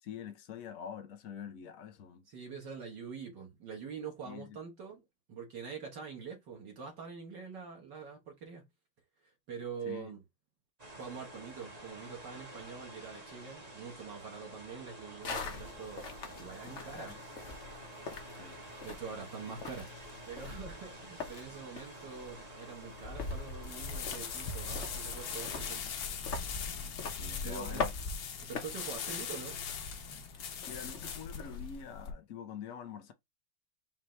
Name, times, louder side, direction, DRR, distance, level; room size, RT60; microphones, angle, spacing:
voice 1, 0.0-2.2 4.2-4.6 9.9-10.1 16.6-17.1 18.4-18.6 27.2-27.9 30.7-33.1, left 8 dB, 80° left, 0.7 m, -46 dB
voice 2, 2.3-8.7 9.2-10.2 11.0-16.0 16.4-17.2 18.4-25.8 27.4-27.8 28.4-29.6, right 6 dB, 55° right, 1.8 m, -45 dB
sound 1, 10.8-25.7, right 1 dB, 25° right, 1.1 m, -50 dB
sound 2, 15.2-31.8, left 3 dB, 45° left, 1.0 m, -43 dB
sound 3, 23.6-32.1, left 7 dB, 65° left, 1.5 m, -41 dB
5.7 x 2.9 x 3.2 m
omnidirectional pair, 2.4 m